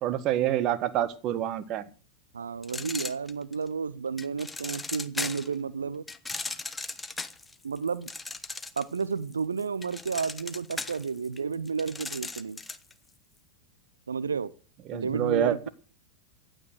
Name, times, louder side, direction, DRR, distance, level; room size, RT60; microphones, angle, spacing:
voice 1, 0.0-1.9 14.9-15.7, right 11 dB, 35° right, 1.3 m, -27 dB
voice 2, 2.3-6.0 7.6-8.1 8.8-12.6 14.1-14.5 14.9-15.7, right 5 dB, 75° right, 0.7 m, -31 dB
sound 1, 2.6-3.7 4.2-5.5 6.1-9.0 9.3-12.9, left 3 dB, 10° left, 1.1 m, -37 dB
15.5 x 9.2 x 6.5 m
figure-of-eight pair, 90°, 0 cm